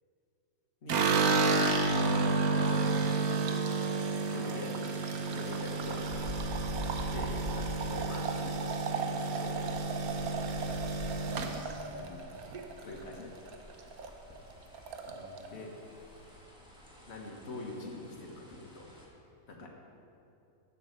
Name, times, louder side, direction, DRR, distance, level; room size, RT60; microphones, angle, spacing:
sound 1, 0.9-13.1 13.5-14.1 14.4-14.5 14.7-15.5, right 3 dB, 75° right, 1.3 m, -31 dB
voice 1, 2.0-3.7 4.3-5.0 5.3-6.3 7.1-9.6 11.9-12.4 12.8-13.3 15.1-15.7 17.1-18.9 19.5-19.7, left 2 dB, 45° left, 0 dB, 1.6 m, -44 dB
sound 2, 5.2-19.1, left 1 dB, 5° right, 1.5 m, -46 dB
9.9 x 7.2 x 6.5 m, 2.7 s
omnidirectional pair, 1.6 m